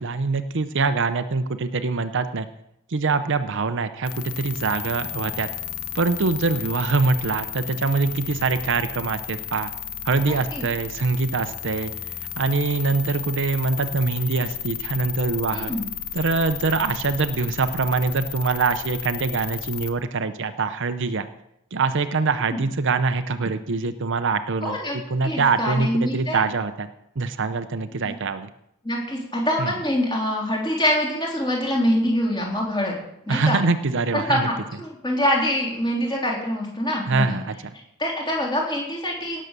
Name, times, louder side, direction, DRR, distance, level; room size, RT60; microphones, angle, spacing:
voice 1, 0.0-2.5 2.9-5.5 5.9-9.7 10.0-11.9 12.4-15.7 16.1-21.3 21.7-26.9 27.2-28.5 29.6-29.7 33.3-34.5 37.1-37.5, right 4 dB, 55° right, 10 dB, 0.7 m, -24 dB
sound 1, 4.0-19.9, left 9 dB, 90° left, 1.2 m, -33 dB
voice 2, 10.3-10.6 15.5-15.9 22.5-22.6 24.6-25.0 25.2-26.4 28.0-28.2 28.8-33.0 33.2-33.6 34.1-37.4 38.0-39.4, equal, 20° left, -2 dB, 3.7 m, -25 dB
17.5 x 7.5 x 6.7 m, 0.81 s
head